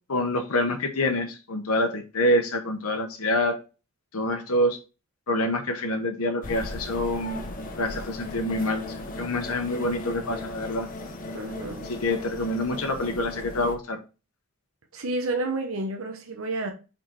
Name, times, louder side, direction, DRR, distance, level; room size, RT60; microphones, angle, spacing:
voice 1, 0.1-3.6 4.1-4.8 5.3-7.4 7.8-10.9 11.9-14.0, left 1 dB, 80° left, 1.0 m, -26 dB
sound 1, 6.4-13.8, left 2 dB, 40° left, 1.0 m, -37 dB
voice 2, 11.3-11.9 14.9-16.7, right 2 dB, 65° right, 0.9 m, -30 dB
5.2 x 4.4 x 4.4 m
head